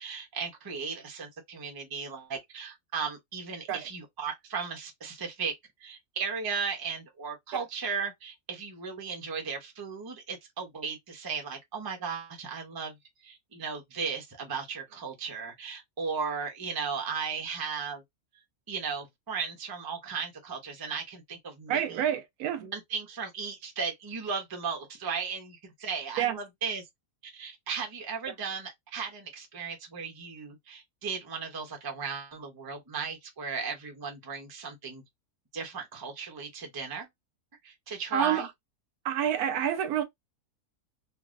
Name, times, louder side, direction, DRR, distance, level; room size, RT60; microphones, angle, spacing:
voice 1, 0.0-5.5 5.8-13.0 13.2-18.0 18.7-22.0 22.6-26.8 27.2-35.0 35.5-37.1 37.6-38.5, right 6 dB, 30° right, 0.4 m, -36 dB
voice 2, 21.7-22.7 26.2-26.4 38.1-38.5 39.0-40.0, right 9 dB, 80° right, 1.1 m, -28 dB
3.3 x 2.5 x 2.4 m
omnidirectional pair, 1.6 m